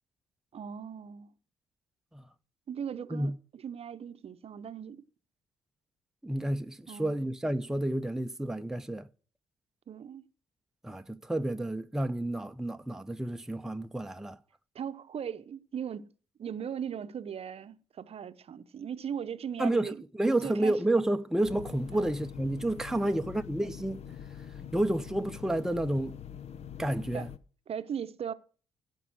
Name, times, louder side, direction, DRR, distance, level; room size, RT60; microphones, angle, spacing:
voice 1, 0.5-1.3 2.7-5.0 6.9-7.2 9.9-10.2 14.7-16.1 16.4-20.0 20.4-20.8 21.9-22.1 23.0-23.2 27.1-27.3 27.7-28.3, right 8 dB, 50° right, 0.8 m, -38 dB
voice 2, 6.2-9.1 10.8-14.4 19.6-24.0 24.7-26.2 26.8-27.3, right 1 dB, 5° right, 0.7 m, -30 dB
sound 1, 21.4-27.4, left 9 dB, 50° left, 0.8 m, -44 dB
16.0 x 5.4 x 6.3 m
hypercardioid pair, 50°, 13 cm